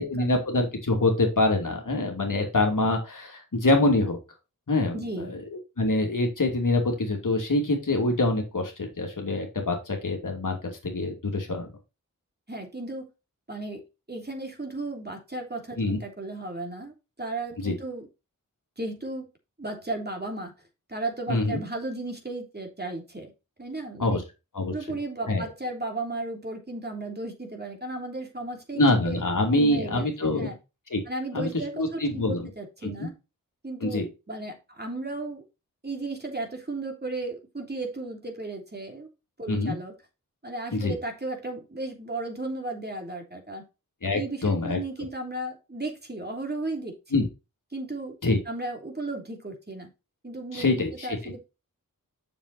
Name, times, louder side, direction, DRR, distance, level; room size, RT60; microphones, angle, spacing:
voice 1, 0.0-4.2 4.7-5.0 5.3-5.4 5.8-11.7 15.8-16.0 17.6-17.7 21.3-21.6 24.0-24.2 24.5-24.7 25.3-25.4 28.8-30.5 30.9-31.0 31.3-32.5 32.8-33.1 33.8-34.1 39.5-39.8 40.7-40.9 44.0-44.8 47.1-47.3 48.2-48.4 50.5-51.3, left 2 dB, 65° left, 2 dB, 2.7 m, -25 dB
voice 2, 4.9-5.3 12.5-13.0 13.5-13.8 14.1-18.1 18.8-19.3 19.6-20.5 20.9-23.3 23.6-24.2 24.7-29.2 29.5-30.6 31.1-33.1 33.6-35.4 35.8-39.1 39.4-39.9 40.4-43.6 44.1-47.0 47.7-48.2 48.4-49.9 50.2-51.4, right 2 dB, 30° right, 2 dB, 3.3 m, -35 dB
7.1 x 7.0 x 4.1 m, 0.27 s
cardioid pair, 40°, 34 cm